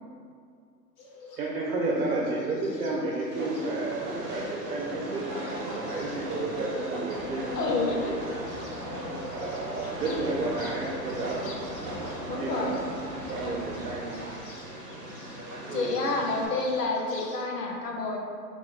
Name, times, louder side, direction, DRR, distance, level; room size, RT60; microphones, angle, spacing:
Bird, 1.0-17.4, left 2 dB, 35° left, 0.7 m, -45 dB
voice 1, 1.4-8.2 9.3-12.8 13.1-14.3 15.7-16.1, right 2 dB, 60° right, -3 dB, 0.8 m, -32 dB
Train, 3.3-16.5, right 1 dB, 35° right, 1.1 m, -38 dB
sound 1, 7.1-14.4, equal, 15° right, 1.3 m, -42 dB
voice 2, 7.5-8.1 12.3-12.7 15.7-18.2, left 3 dB, 70° left, 0 dB, 1.0 m, -29 dB
3.8 x 3.1 x 3.7 m, 2.1 s
figure-of-eight pair, 115°, 50 cm